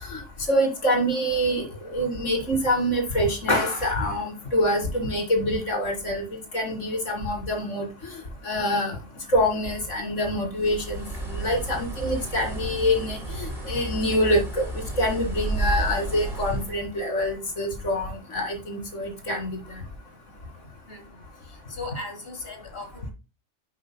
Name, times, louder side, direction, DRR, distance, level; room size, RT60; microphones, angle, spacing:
voice 1, 0.5-1.7 1.9-6.2 6.5-7.9 8.4-9.0 9.3-14.6 15.0-19.8, equal, 90° left, 3 dB, 2.9 m, -25 dB
Bird, 10.6-16.8, right 2 dB, 30° right, 3.4 m, -32 dB
voice 2, 21.4-23.1, left 3 dB, 50° left, 4 dB, 2.3 m, -38 dB
11.0 x 5.9 x 2.3 m, 0.29 s
omnidirectional pair, 1.2 m